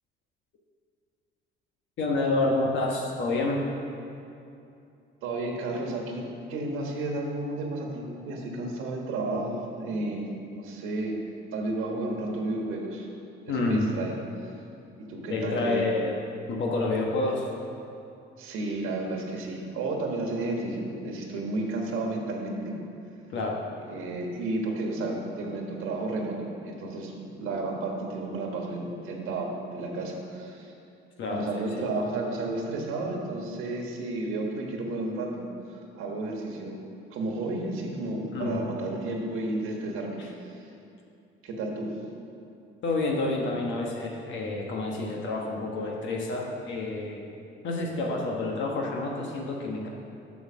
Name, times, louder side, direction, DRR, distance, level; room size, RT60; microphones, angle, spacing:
voice 1, 2.0-3.7 13.5-13.9 15.3-16.2 16.5-17.5 23.3-23.6 31.2-31.7 38.3-38.6 40.2-40.3 42.8-47.3 47.6-49.9, left 2 dB, 65° left, -1 dB, 1.2 m, -28 dB
voice 2, 5.2-11.2 11.5-13.1 13.5-14.1 14.4-14.5 15.0-15.9 18.4-22.8 23.8-30.7 31.3-36.8 37.1-40.7 41.4-41.9, right 2 dB, 80° right, 1 dB, 1.4 m, -32 dB
7.3 x 6.4 x 6.2 m, 2.7 s
cardioid pair, 105°, 21 cm